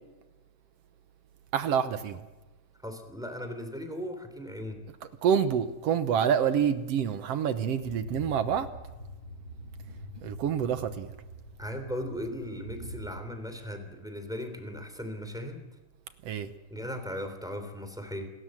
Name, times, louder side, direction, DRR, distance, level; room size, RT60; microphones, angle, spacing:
voice 1, 1.5-2.2 5.2-8.7 10.2-11.1 16.2-16.5, right 8 dB, 65° right, 11 dB, 1.9 m, -27 dB
voice 2, 2.8-4.8 11.6-15.7 16.7-18.3, equal, ahead, 7 dB, 2.9 m, -37 dB
sound 1, 7.8-13.2, equal, 45° right, 3.4 m, -44 dB
27.5 x 13.0 x 7.7 m, 1.1 s
omnidirectional pair, 3.3 m